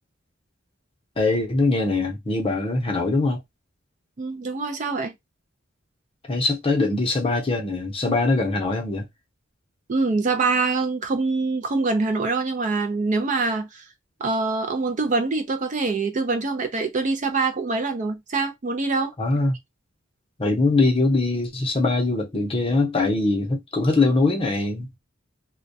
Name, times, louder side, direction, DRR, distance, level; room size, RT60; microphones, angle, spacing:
voice 1, 1.2-3.4 6.3-9.1 19.2-19.6 20.4-25.0, left 3 dB, 30° left, 0.6 m, -22 dB
voice 2, 4.2-5.1 9.9-13.8 14.2-19.1, right 3 dB, 40° right, 0.4 m, -24 dB
2.2 x 2.1 x 2.6 m
head